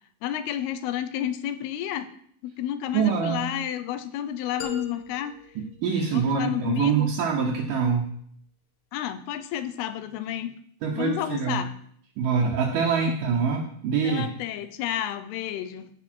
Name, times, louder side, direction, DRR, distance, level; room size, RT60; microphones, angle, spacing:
voice 1, 0.2-2.1 2.4-5.3 6.1-7.1 8.9-10.6 10.9-11.7 14.0-15.9, left 11 dB, 85° left, 11 dB, 2.7 m, -31 dB
voice 2, 2.9-3.5 5.6-8.1 10.8-11.6 12.2-14.3, right 6 dB, 70° right, -1 dB, 2.3 m, -25 dB
sound 1, 4.6-6.7, left 5 dB, 70° left, 2.3 m, -41 dB
15.0 x 5.3 x 4.4 m, 0.65 s
omnidirectional pair, 4.4 m